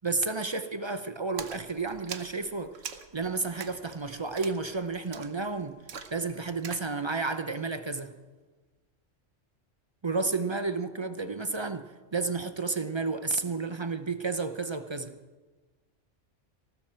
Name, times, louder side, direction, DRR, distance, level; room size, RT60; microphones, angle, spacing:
voice 1, 0.0-5.8 6.1-8.1 10.0-15.2, right 3 dB, 35° right, 0.5 m, -32 dB
Splash splatter, 1.4-6.9, right 7 dB, 85° right, 1.2 m, -44 dB
19.5 x 14.5 x 4.4 m
omnidirectional pair, 1.2 m